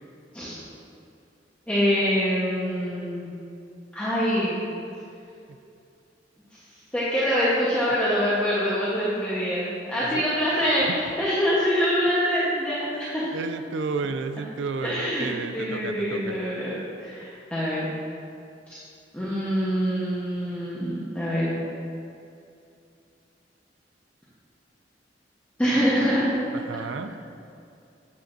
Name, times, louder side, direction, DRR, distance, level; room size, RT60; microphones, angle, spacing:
voice 1, 1.7-3.3 3.9-4.6 6.9-13.3 14.8-16.7 17.0-17.9 18.7-18.8 19.1-21.6 25.6-26.3, equal, 10° left, -10 dB, 1.0 m, -25 dB
voice 2, 12.9-16.4 26.5-27.2, right 4 dB, 90° right, 9 dB, 0.4 m, -32 dB
8.5 x 7.9 x 2.6 m, 2.6 s
head